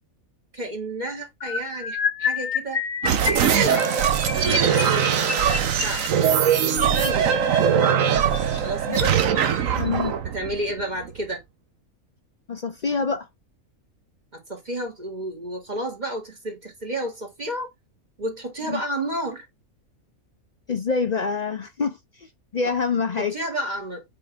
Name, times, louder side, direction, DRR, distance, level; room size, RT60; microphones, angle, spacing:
voice 1, 0.5-2.8 3.4-3.9 4.4-7.4 8.6-9.1 10.3-11.4 14.3-17.7 18.2-19.5 22.6-22.7 23.2-24.0, right 1 dB, 30° right, 2.1 m, -31 dB
sound 1, 1.4-8.6 9.3-9.6 9.9-10.1 10.4-10.6, left 6 dB, 40° left, 0.8 m, -30 dB
sound 2, 3.0-11.3, right 8 dB, 65° right, 1.2 m, -21 dB
voice 2, 9.8-10.2 12.5-13.3 18.7-18.8 20.7-22.0 22.5-23.3, left 5 dB, 65° left, 0.4 m, -25 dB
7.5 x 3.8 x 3.5 m
omnidirectional pair, 1.5 m